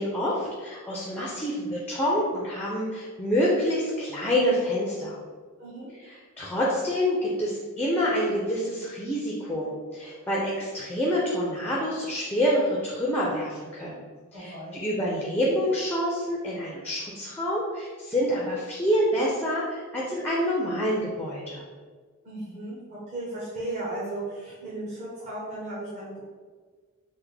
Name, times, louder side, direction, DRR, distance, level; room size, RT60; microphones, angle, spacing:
voice 1, 0.0-5.2 6.4-14.0 14.3-21.6, equal, 10° left, -4 dB, 0.4 m, -27 dB
voice 2, 5.6-5.9 14.3-14.8 22.2-26.2, right 2 dB, 30° right, -9 dB, 0.7 m, -35 dB
3.4 x 2.1 x 3.2 m, 1.5 s
head